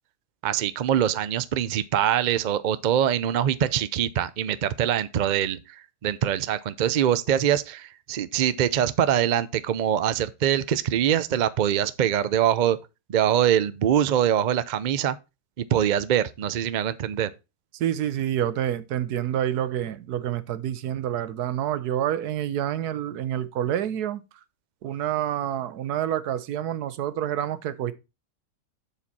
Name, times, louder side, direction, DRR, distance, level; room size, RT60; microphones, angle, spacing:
voice 1, 0.4-5.6 6.0-12.8 13.1-15.2 15.6-17.3, right 10 dB, 70° right, 0.4 m, -23 dB
voice 2, 17.7-24.2 24.8-27.9, right 11 dB, 90° right, 1.3 m, -28 dB
7.3 x 7.0 x 4.1 m
omnidirectional pair, 1.6 m